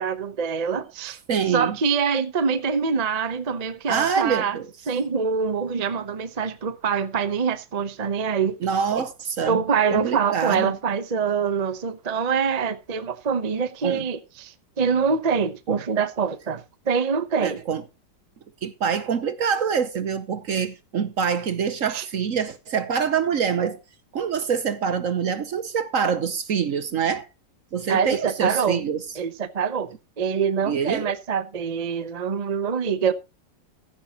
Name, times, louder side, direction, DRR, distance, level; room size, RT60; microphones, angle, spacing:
voice 1, 0.0-1.2 1.5-4.6 4.9-8.6 8.9-9.0 9.4-17.6 21.9-22.1 27.9-28.8 29.1-33.1, right 6 dB, 35° right, 0.7 m, -25 dB
voice 2, 1.3-1.8 3.9-4.7 8.6-9.6 9.9-10.8 13.8-14.0 15.7-15.8 17.4-17.8 18.6-23.8 24.1-27.3 27.7-29.0 30.7-31.1, right 7 dB, 55° right, 1.1 m, -25 dB
14.5 x 10.0 x 3.0 m
omnidirectional pair, 2.0 m